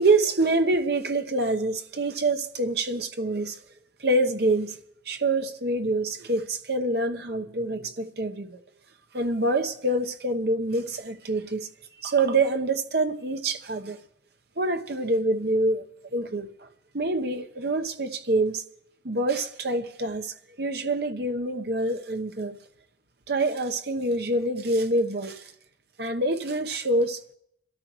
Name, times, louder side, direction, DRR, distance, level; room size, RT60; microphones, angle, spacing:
voice 1, 0.0-3.6 4.0-4.8 5.1-8.6 9.1-11.7 12.0-14.0 14.6-16.7 16.9-18.6 19.0-22.6 23.3-25.5 26.0-27.2, right 2 dB, 60° right, 1.0 m, -26 dB
27.0 x 13.5 x 3.1 m
head